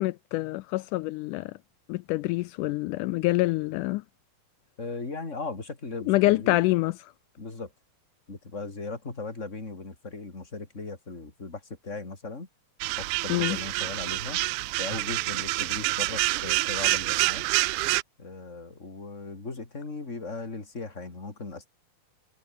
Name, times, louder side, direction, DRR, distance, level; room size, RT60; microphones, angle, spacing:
voice 1, 0.0-1.5 1.9-4.0 6.1-6.9 13.3-13.6, left 19 dB, 80° left, 1.8 m, -26 dB
voice 2, 4.8-6.6 7.4-7.7 8.3-12.5 13.0-14.4 14.8-17.4 18.2-21.7, left 3 dB, 20° left, 3.7 m, -38 dB
sound 1, 12.8-18.0, right 22 dB, 85° right, 1.7 m, -27 dB
omnidirectional pair, 4.0 m